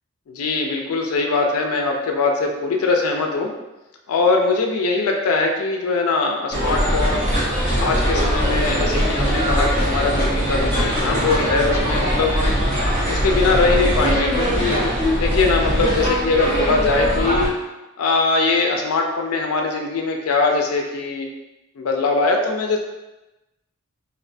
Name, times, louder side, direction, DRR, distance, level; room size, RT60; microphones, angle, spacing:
voice 1, 0.3-3.5 4.1-7.2 7.8-12.6 13.1-14.8 15.2-17.5 18.0-21.3 21.8-22.8, left 3 dB, 90° left, 2 dB, 0.4 m, -21 dB
sound 1, 6.5-17.5, equal, 35° right, 1.0 m, -21 dB
2.6 x 2.1 x 2.6 m, 1.0 s
head